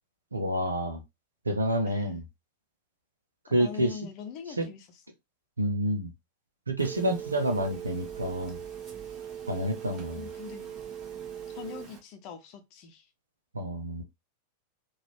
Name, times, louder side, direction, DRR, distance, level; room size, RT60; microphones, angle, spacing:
voice 1, 0.3-1.0 1.4-2.2 3.5-3.9 4.6-4.7 5.6-6.1 6.7-8.6 9.5-10.3 13.5-14.0, right 1 dB, 80° right, 0.8 m, -28 dB
voice 2, 1.9-2.2 3.6-4.9 10.1-10.7 11.5-13.1, left 7 dB, 40° left, 0.8 m, -42 dB
Telephone, 6.8-12.0, right 9 dB, 30° right, 1.4 m, -40 dB
4.0 x 2.5 x 3.0 m
figure-of-eight pair, 90°, 0 cm